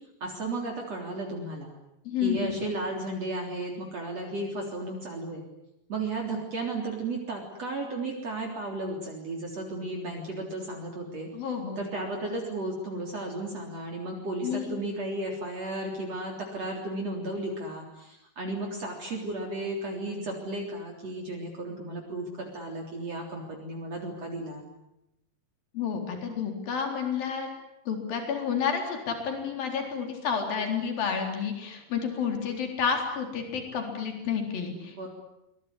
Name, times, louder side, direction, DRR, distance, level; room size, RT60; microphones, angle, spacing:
voice 1, 0.2-1.7 2.2-5.4 5.9-11.3 11.8-24.7 34.9-35.1, right 2 dB, 45° right, 0 dB, 4.5 m, -34 dB
voice 2, 2.1-2.6 11.3-11.8 14.4-14.7 25.7-27.5 27.9-35.1, left 6 dB, 75° left, 3 dB, 5.6 m, -30 dB
24.5 x 22.5 x 9.9 m, 0.88 s
omnidirectional pair, 4.1 m